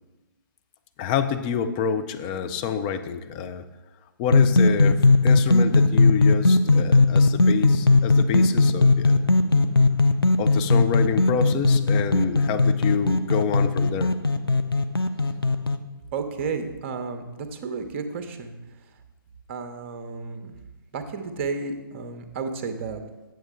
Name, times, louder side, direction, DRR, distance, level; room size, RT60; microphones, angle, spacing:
voice 1, 1.0-3.6 4.2-9.3 10.4-14.1, left 7 dB, 20° left, 9 dB, 0.4 m, -28 dB
sound 1, 4.2-15.8, left 3 dB, 85° left, 0.5 m, -18 dB
voice 2, 16.1-18.6 19.5-20.6 20.9-23.0, right 4 dB, 35° right, 7 dB, 0.8 m, -32 dB
8.0 x 7.7 x 3.6 m, 1.1 s
figure-of-eight pair, 130°, 12 cm